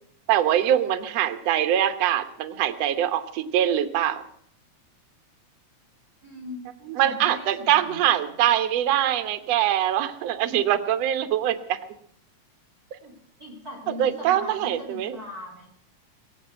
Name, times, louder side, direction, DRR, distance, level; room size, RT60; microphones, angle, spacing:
voice 1, 0.3-4.2 6.9-11.8 14.0-15.2, right 11 dB, 65° right, 9 dB, 2.0 m, -23 dB
voice 2, 6.2-6.6 7.0-8.4 13.0-13.1 13.4-15.7, left 1 dB, 30° right, 0 dB, 3.3 m, -40 dB
22.5 x 7.7 x 7.8 m, 0.68 s
omnidirectional pair, 3.5 m